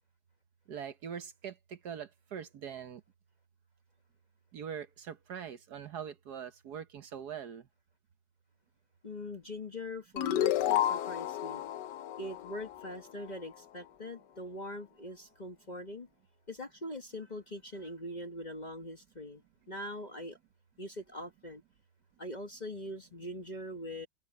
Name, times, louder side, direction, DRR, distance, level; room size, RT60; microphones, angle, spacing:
voice 1, 0.7-3.0 4.5-7.7, right 8 dB, 60° right, 1.4 m, -42 dB
voice 2, 9.0-11.6 12.2-16.1 16.5-19.4 19.7-20.4 20.8-21.6 22.2-24.1, left 1 dB, 25° left, 1.2 m, -42 dB
sound 1, 10.2-13.4, left 11 dB, 70° left, 1.2 m, -31 dB
omnidirectional pair, 2.1 m